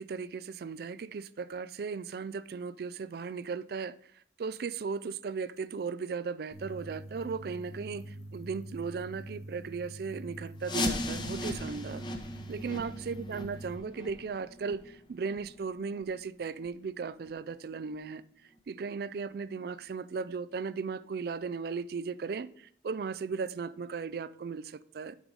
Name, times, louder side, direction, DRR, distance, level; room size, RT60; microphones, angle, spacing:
voice 1, 0.0-4.0 4.4-12.0 12.5-18.2 18.7-25.2, right 5 dB, 55° right, 0.3 m, -36 dB
sound 1, 6.5-13.8, right 1 dB, 60° left, 1.2 m, -45 dB
sound 2, 10.6-16.2 16.5-16.7 17.2-17.3 17.9-18.0 18.6-18.7, left 1 dB, 25° left, 0.8 m, -37 dB
7.2 x 5.4 x 4.7 m
head